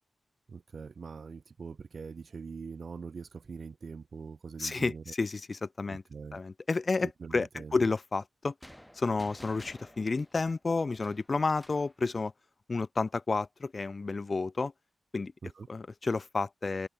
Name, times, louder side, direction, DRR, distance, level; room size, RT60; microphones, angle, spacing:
voice 1, 0.5-5.1 5.9-6.4 7.0-7.8 15.4-15.7, right 5 dB, 60° right, 0.4 m, -43 dB
voice 2, 4.6-6.0 6.3-8.5 8.9-12.3 12.7-14.7 15.1-15.3 15.7-16.9, left 3 dB, 45° left, 0.4 m, -31 dB
sound 1, 8.6-11.9, equal, 5° left, 1.1 m, -53 dB
cardioid pair, 75°, 0 cm